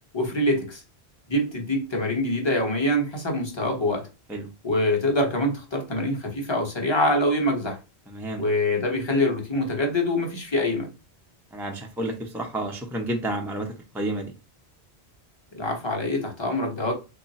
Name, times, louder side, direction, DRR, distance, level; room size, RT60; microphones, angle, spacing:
voice 1, 0.1-0.8 1.3-4.1 4.6-7.8 8.4-10.9 15.5-16.9, left 1 dB, 25° left, 0.8 m, -25 dB
voice 2, 8.1-8.4 11.5-14.3, right 1 dB, 5° right, 0.4 m, -30 dB
3.2 x 2.3 x 4.0 m
omnidirectional pair, 1.1 m